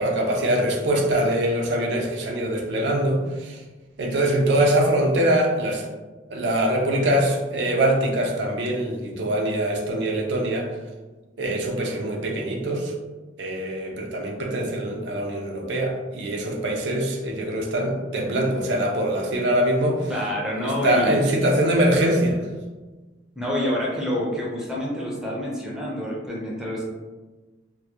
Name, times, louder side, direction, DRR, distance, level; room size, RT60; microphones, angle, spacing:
voice 1, 0.0-3.6 4.0-5.9 6.3-10.7 11.4-12.9 13.4-20.1 20.6-22.4, right 1 dB, 70° right, 0 dB, 0.4 m, -23 dB
voice 2, 20.1-21.2 23.4-26.8, left 1 dB, 5° right, -4 dB, 0.4 m, -27 dB
2.2 x 2.1 x 2.7 m, 1.2 s
head